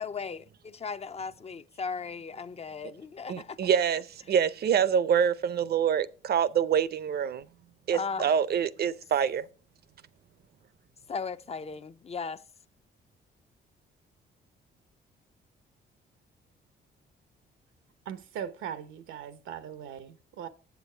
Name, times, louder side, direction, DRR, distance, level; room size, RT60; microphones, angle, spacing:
voice 1, 0.0-3.6 7.9-8.3 11.1-12.4, left 5 dB, 30° left, 0.5 m, -37 dB
voice 2, 3.3-7.4 7.9-9.5, right 8 dB, 55° right, 0.6 m, -26 dB
voice 3, 18.1-20.5, right 9 dB, 85° right, 1.0 m, -39 dB
7.9 x 7.1 x 4.4 m
cardioid pair, 90°, 20 cm